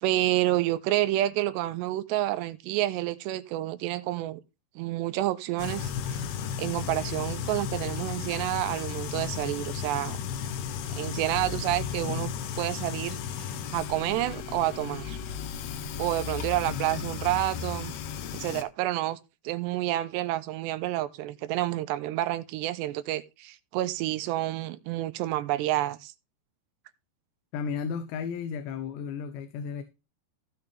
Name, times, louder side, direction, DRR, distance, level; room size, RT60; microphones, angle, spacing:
voice 1, 0.0-4.4 4.8-6.2 6.6-10.2 10.9-15.2 16.0-17.9 18.3-19.2 19.4-26.1, right 15 dB, 90° right, 2.9 m, -29 dB
sound 1, 5.6-18.6, left 8 dB, 70° left, 2.9 m, -34 dB
voice 2, 27.5-29.8, left 6 dB, 85° left, 3.3 m, -34 dB
16.0 x 6.7 x 3.4 m
omnidirectional pair, 4.9 m